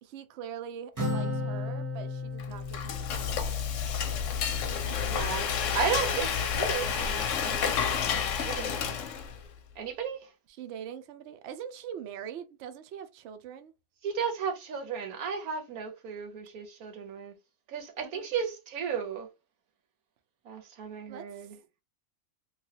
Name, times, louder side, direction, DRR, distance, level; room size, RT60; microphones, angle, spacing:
voice 1, 0.0-3.6 4.9-5.1 10.6-13.7 18.0-18.3 21.1-21.5, right 8 dB, 65° right, 0.7 m, -43 dB
Acoustic guitar, 1.0-4.6, left 3 dB, 15° right, 0.8 m, -35 dB
Frying (food), 2.4-9.5, left 7 dB, 65° left, 0.9 m, -30 dB
voice 2, 5.1-7.8 8.4-9.0 9.8-10.3 14.0-17.3 17.7-19.3 20.4-21.6, right 6 dB, 80° right, 1.2 m, -34 dB
3.1 x 2.2 x 2.8 m
omnidirectional pair, 1.5 m